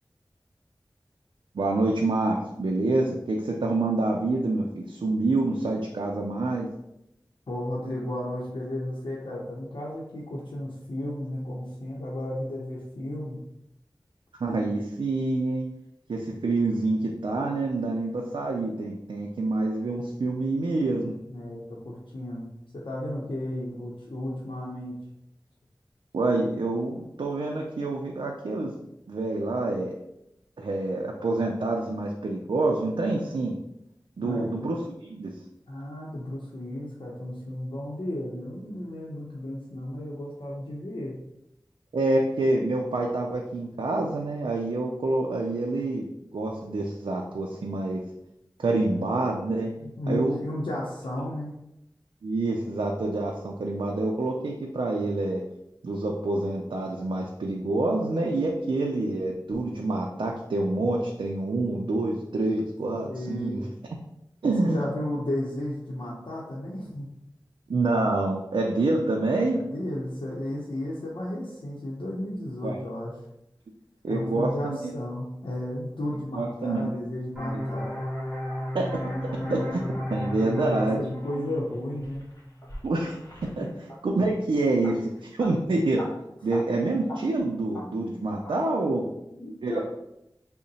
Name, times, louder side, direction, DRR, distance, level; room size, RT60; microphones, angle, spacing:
voice 1, 1.5-6.7 14.4-15.7 16.1-21.1 26.1-28.7 29.1-29.9 30.6-33.5 34.2-35.3 41.9-46.1 46.3-48.0 48.6-49.7 50.1-50.4 52.2-55.4 55.8-63.6 64.4-64.8 67.7-69.6 72.6-72.7 74.0-74.9 76.3-77.0 78.7-78.9 79.5-79.8 80.1-81.0 82.8-83.2 83.4-83.7 84.0-86.0 86.4-89.0 89.6-89.8, right 2 dB, 90° right, 0 dB, 0.4 m, -27 dB
voice 2, 7.5-13.4 21.3-22.5 22.7-24.9 34.2-34.5 35.7-41.2 49.8-51.5 63.1-63.6 64.6-67.1 69.5-73.1 74.1-78.0 79.3-79.6 80.4-82.2 83.6-83.7 88.9-89.8, left 1 dB, 90° left, -6 dB, 0.7 m, -34 dB
sound 1, 77.3-82.7, equal, 5° right, 1.5 m, -33 dB
sound 2, 80.9-84.0 84.8-84.9 85.2-85.5 85.8-86.1 86.4-86.6 87.1-87.4 87.7-87.8 88.4-88.5, equal, 45° left, 1.3 m, -43 dB
3.7 x 2.1 x 4.0 m, 0.84 s
wide cardioid pair, 40°, 8 cm